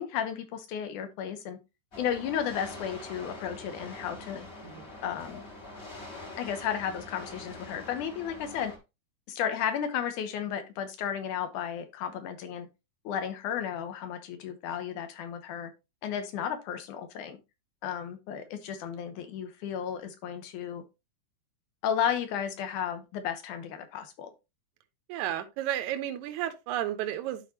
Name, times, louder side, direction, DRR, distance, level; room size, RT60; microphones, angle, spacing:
voice 1, 0.0-1.6 2.0-4.5 5.0-5.5 6.4-8.7 9.3-12.7 13.0-15.7 16.0-17.4 17.8-20.8 21.8-24.3, left 8 dB, 75° left, 2.4 m, -33 dB
sound 1, 1.9-8.8, left 2 dB, 30° left, 1.3 m, -44 dB
voice 2, 25.1-27.4, right 12 dB, 75° right, 1.9 m, -32 dB
11.5 x 4.3 x 2.8 m
omnidirectional pair, 3.8 m